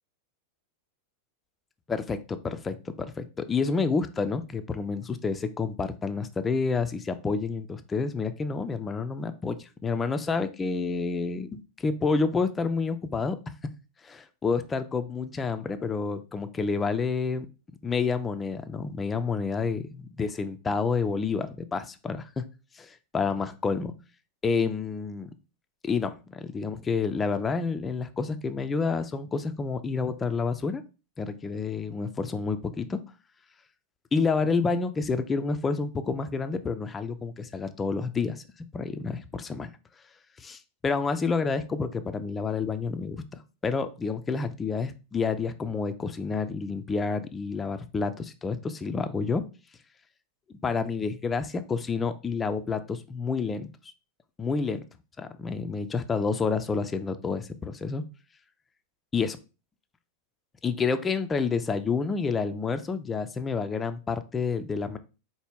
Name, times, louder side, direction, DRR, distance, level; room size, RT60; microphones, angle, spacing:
voice 1, 1.9-13.4 14.0-17.5 17.8-22.4 22.7-23.9 24.4-25.3 25.8-30.8 31.2-33.0 34.1-38.4 38.7-39.7 40.4-43.2 43.6-49.4 50.6-53.7 54.4-54.8 55.2-58.0 59.1-59.4 60.6-65.0, left 4 dB, 15° left, 9 dB, 0.3 m, -29 dB
4.5 x 2.1 x 3.5 m, 0.31 s
figure-of-eight pair, 90°, 0 cm